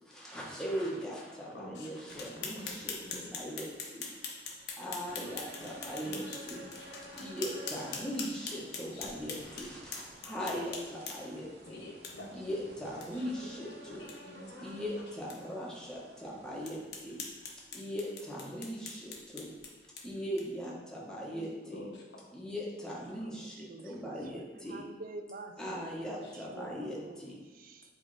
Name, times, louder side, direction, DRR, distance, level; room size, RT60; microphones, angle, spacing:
voice 1, 0.1-4.1 4.8-6.6 7.1-11.8 12.3-14.0 14.6-17.2 17.7-19.5 20.0-21.8 22.3-24.8 25.6-27.3, equal, 5° left, -5 dB, 1.1 m, -39 dB
voice 2, 1.5-3.6 5.6-7.3 7.7-7.8 8.9-9.1 11.6-12.3 12.9-13.5 13.8-14.7 21.3-21.4 21.7-22.0 23.1-23.2 25.7-26.7 27.0-27.1, left 1 dB, 90° left, -2 dB, 1.4 m, -50 dB
sound 1, 2.1-11.4 12.0-12.1 12.5-12.6 13.0-13.1 13.4-13.5 13.9-14.2 14.7-14.8 15.3-15.4 15.9-16.0 16.6-20.7, left 4 dB, 70° left, 1.0 m, -43 dB
sound 2, 5.1-16.7, right 1 dB, 70° right, 0.9 m, -52 dB
voice 3, 23.3-27.9, right 2 dB, 50° right, 5 dB, 0.5 m, -49 dB
8.1 x 3.3 x 4.1 m, 1.2 s
head